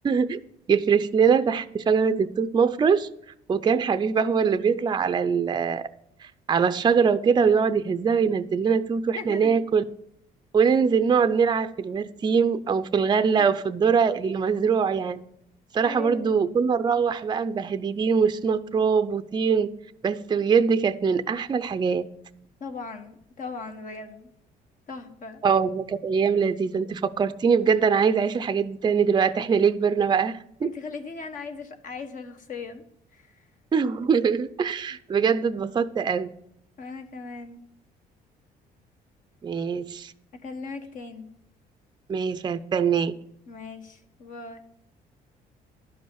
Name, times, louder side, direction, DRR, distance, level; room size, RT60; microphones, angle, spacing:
voice 1, 0.0-0.4 0.7-3.1 3.5-5.8 6.2-9.8 10.5-15.2 15.7-19.7 20.0-22.1 25.4-30.7 33.7-36.3 39.4-40.1 42.1-43.1, right 6 dB, 25° right, 0.5 m, -23 dB
voice 2, 9.1-9.5 13.4-13.5 15.8-16.4 22.6-24.3 24.9-25.4 30.6-32.8 33.1-33.2 36.8-37.6 40.4-41.3 43.5-44.6, left 4 dB, 50° left, 1.5 m, -38 dB
12.0 x 5.4 x 7.9 m
cardioid pair, 110°, 17 cm